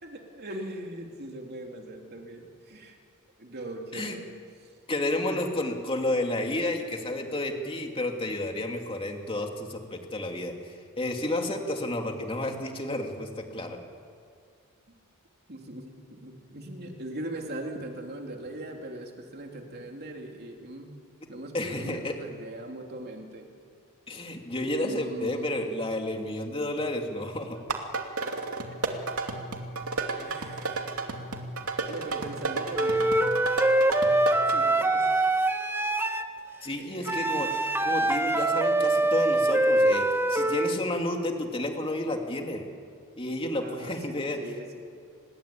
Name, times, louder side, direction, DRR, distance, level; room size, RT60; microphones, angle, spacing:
voice 1, 0.0-3.0 3.4-4.3 5.3-5.4 15.5-20.9 21.3-23.5 24.8-25.5 28.7-29.0 30.1-30.9 31.9-33.1 34.5-35.2 36.7-37.2 43.5-44.9, right 1 dB, 50° right, 2 dB, 3.2 m, -40 dB
voice 2, 4.9-13.8 21.5-22.2 24.1-27.6 36.6-37.5 37.8-42.7 43.2-44.4, left 1 dB, 25° left, 3 dB, 2.8 m, -31 dB
sound 1, 27.6-34.6, right 3 dB, 80° right, 2.7 m, -32 dB
Wind instrument woodwind instrument, 32.7-36.3 37.1-40.8, right 2 dB, 10° right, 1.1 m, -24 dB
29.0 x 21.0 x 8.7 m, 2.2 s
head